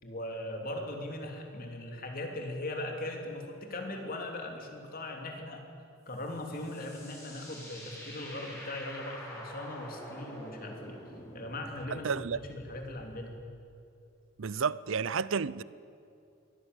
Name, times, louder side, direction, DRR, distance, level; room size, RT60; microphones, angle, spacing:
voice 1, 0.0-5.6 6.1-11.0 11.3-13.4, left 1 dB, 45° left, 3.2 m, -39 dB
sound 1, 6.1-13.3, equal, 10° left, 5.1 m, -47 dB
voice 2, 11.9-12.4 14.4-15.6, right 6 dB, 65° right, 0.5 m, -31 dB
23.5 x 17.0 x 8.2 m
head